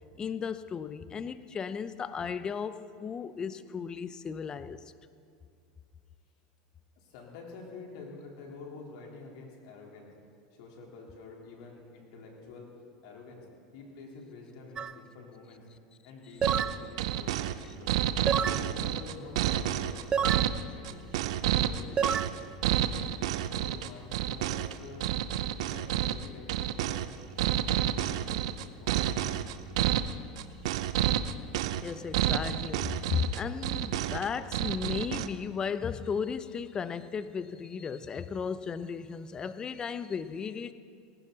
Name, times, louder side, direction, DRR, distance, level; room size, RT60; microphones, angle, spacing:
voice 1, 0.2-4.8 31.8-40.7, left 6 dB, 25° left, 13 dB, 0.7 m, -35 dB
voice 2, 7.0-10.1 10.5-12.7 13.0-13.5 13.7-15.7 16.0-18.0 18.3-22.2 22.6-23.1 23.4-25.2 25.6-27.1 27.8-29.5, left 3 dB, 70° left, -1 dB, 3.8 m, -48 dB
sound 1, 14.8-14.9 16.4-16.8 18.3-18.6 20.1-20.5 22.0-22.3, right 7 dB, 25° right, 0.5 m, -28 dB
sound 2, 16.4-35.3, right 11 dB, 75° right, 0.7 m, -30 dB
19.0 x 17.5 x 4.1 m, 2.3 s
supercardioid pair, 110°, 3 cm